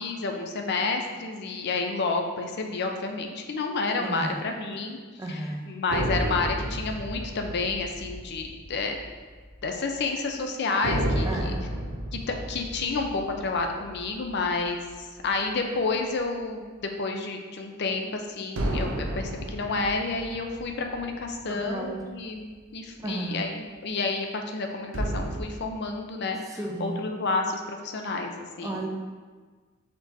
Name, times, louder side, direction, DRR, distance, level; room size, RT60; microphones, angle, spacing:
voice 1, 0.0-5.0 5.3-5.4 5.7-9.0 9.6-11.5 12.1-14.8 15.2-28.8, left 3 dB, 55° left, 4 dB, 0.5 m, -30 dB
voice 2, 4.0-4.4 5.2-5.7 11.2-11.6 21.5-22.0 23.0-23.4 26.4-27.0 28.6-28.9, right 1 dB, 15° right, 0 dB, 0.5 m, -33 dB
sound 1, 5.9-9.6 9.9-10.0 10.8-15.5 18.6-22.2 24.9-25.4, right 1 dB, 70° right, 0.6 m, -32 dB
4.5 x 4.4 x 2.7 m, 1.5 s
head